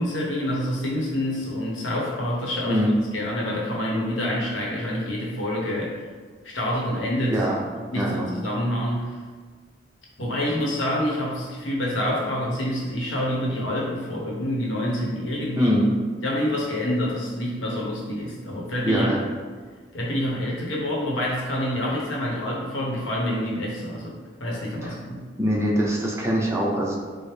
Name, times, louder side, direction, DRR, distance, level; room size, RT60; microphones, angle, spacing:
voice 1, 0.0-2.8 3.1-6.1 6.4-7.4 7.9-9.1 10.2-15.7 16.2-19.1 19.9-25.2, left 1 dB, 90° left, -3 dB, 0.9 m, -27 dB
voice 2, 7.3-7.6 7.9-8.3 15.6-15.9 18.8-19.2 24.8-25.0 25.4-27.0, equal, 15° right, -3 dB, 0.5 m, -23 dB
4.5 x 2.0 x 3.3 m, 1.5 s
head